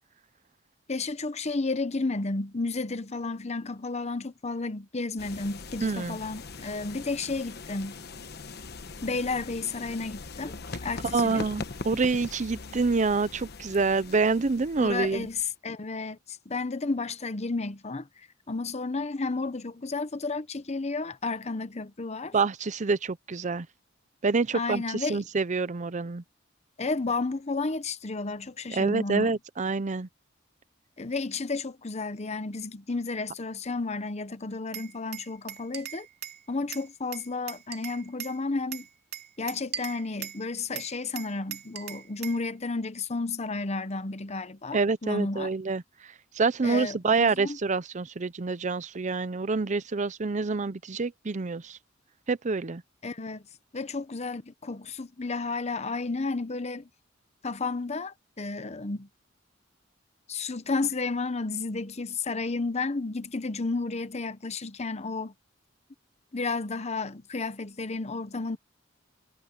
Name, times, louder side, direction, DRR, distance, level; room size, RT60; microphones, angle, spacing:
voice 1, 0.9-8.0 9.0-10.5 10.8-11.5 14.8-22.3 24.5-25.2 26.8-29.3 31.0-36.1 36.5-38.9 39.4-45.5 46.6-47.6 53.0-53.4 53.7-56.9 57.4-59.1 60.3-65.3 66.3-68.6, left 3 dB, 35° left, 0.9 m, -32 dB
sound 1, 5.2-15.5, left 3 dB, 55° left, 1.1 m, -41 dB
voice 2, 5.8-6.2 11.1-15.3 22.3-23.7 24.2-26.2 28.7-30.1 44.7-45.8 46.3-51.8 52.3-52.8, right 4 dB, 40° right, 0.6 m, -27 dB
Glass, 34.7-36.4 36.7-38.4 38.7-40.4 40.8-42.4, right 10 dB, 55° right, 2.4 m, -39 dB
head